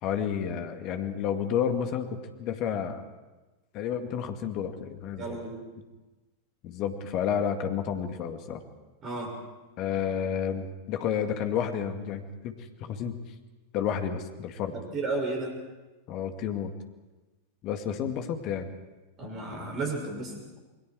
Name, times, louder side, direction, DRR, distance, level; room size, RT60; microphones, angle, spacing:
voice 1, 0.0-3.0 3.7-5.4 6.6-8.6 9.8-13.2 13.7-14.7 16.1-16.7 17.6-18.7, left 8 dB, 40° left, 6 dB, 2.1 m, -31 dB
voice 2, 5.2-5.6 9.0-9.3 14.7-15.5 19.2-20.6, right 3 dB, 30° right, 2 dB, 6.8 m, -33 dB
28.5 x 21.5 x 4.8 m, 1.2 s
figure-of-eight pair, 90°, 0 cm